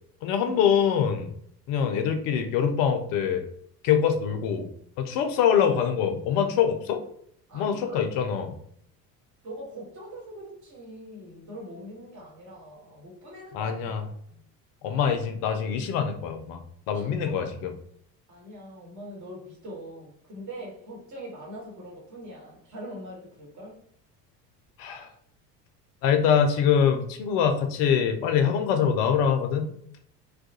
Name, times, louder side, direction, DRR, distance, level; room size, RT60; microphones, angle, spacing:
voice 1, 0.2-1.3 1.7-3.5 3.8-4.7 5.0-7.0 7.5-8.5 13.5-14.0 14.8-17.7 24.8-25.1 26.0-29.7, left 7 dB, 45° left, 7 dB, 0.5 m, -24 dB
voice 2, 7.5-8.0 9.4-13.7 14.0-14.4 16.9-17.3 18.3-23.8, right 1 dB, 35° right, -3 dB, 1.2 m, -42 dB
2.3 x 2.2 x 2.7 m, 0.67 s
figure-of-eight pair, 65°, 49 cm